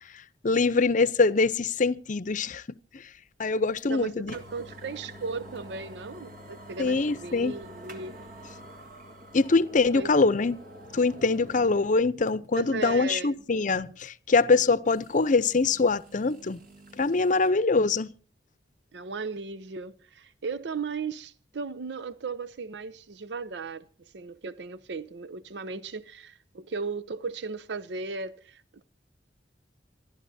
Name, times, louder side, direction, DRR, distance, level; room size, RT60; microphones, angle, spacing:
voice 1, 0.4-2.6 3.4-4.3 6.8-7.5 9.3-10.6 10.9-16.6 17.0-18.1, left 3 dB, 50° left, 0.6 m, -24 dB
sound 1, 3.8-3.9 4.3-11.9 12.3-12.4 14.9-17.5, right 1 dB, 55° right, 1.8 m, -47 dB
voice 2, 3.8-8.2 9.9-10.1 12.6-13.4 18.9-28.8, right 4 dB, 75° right, 0.6 m, -36 dB
27.5 x 11.5 x 2.7 m
head